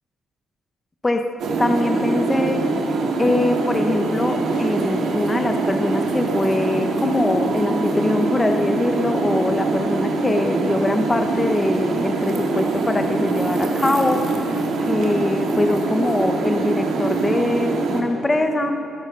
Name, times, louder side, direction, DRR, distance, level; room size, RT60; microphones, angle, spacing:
voice 1, 1.0-2.7 3.2-14.3 14.8-18.8, left 2 dB, 20° left, 5 dB, 1.0 m, -23 dB
sound 1, 1.4-18.0, right 3 dB, 75° right, 2.1 m, -23 dB
21.5 x 12.0 x 5.4 m, 2.8 s
cardioid pair, 90°, 0 cm